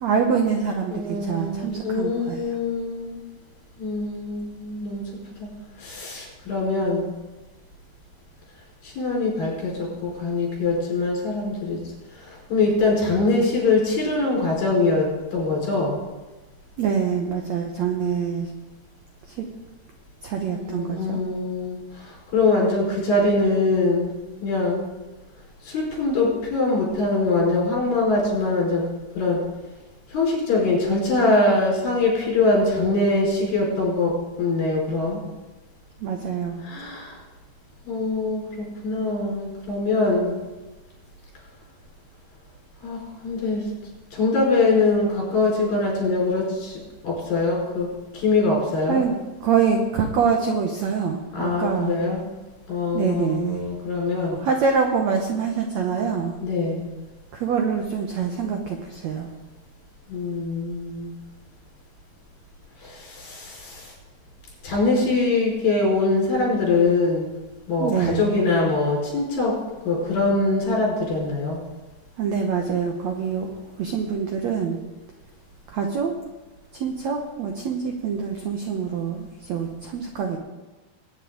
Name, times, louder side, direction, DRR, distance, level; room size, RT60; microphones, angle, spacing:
voice 1, 0.0-2.4 16.8-18.5 19.3-19.5 20.2-21.2 36.0-36.6 48.9-49.1 49.4-51.9 52.9-53.6 54.3-56.3 57.3-59.3 67.8-68.2 72.2-73.5 73.8-74.8 75.7-76.1 76.7-80.4, right 6 dB, 80° right, 3 dB, 1.6 m, -25 dB
voice 2, 0.9-3.2 3.8-5.0 5.4-5.5 5.8-7.1 8.8-11.8 12.1-16.0 20.5-24.9 25.6-28.8 29.1-29.4 30.1-35.2 36.6-37.2 37.8-40.4 42.8-43.7 44.1-47.9 48.1-49.0 51.3-52.3 52.7-54.4 56.4-56.9 60.1-61.2 62.8-63.9 64.6-67.3 67.7-69.5 69.8-71.6, left 3 dB, 65° left, -3 dB, 6.4 m, -23 dB
21.0 x 9.4 x 3.8 m, 1.1 s
omnidirectional pair, 4.5 m